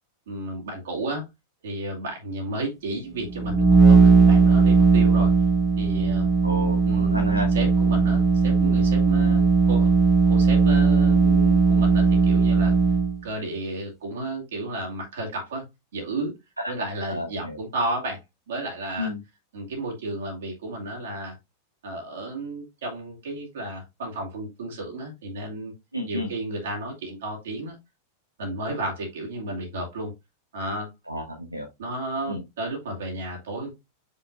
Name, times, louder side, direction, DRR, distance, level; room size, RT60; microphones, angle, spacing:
voice 1, 0.3-1.3 1.6-5.3 5.8-6.3 6.8-12.8 13.2-15.6 15.9-16.3 16.7-19.1 19.5-21.4 21.8-25.7 26.1-27.8 28.4-30.1 30.5-30.9 31.8-33.7, right 2 dB, 60° right, 0 dB, 2.5 m, -32 dB
sound 1, 3.3-13.2, right 4 dB, ahead, 1.0 m, -18 dB
voice 2, 6.4-7.5 16.6-16.7 17.1-17.6 19.0-19.2 25.9-26.3 31.1-31.6 32.2-32.4, left 1 dB, 85° right, 0 dB, 1.5 m, -31 dB
6.9 x 5.6 x 2.6 m, 0.21 s
figure-of-eight pair, 90°, 0 cm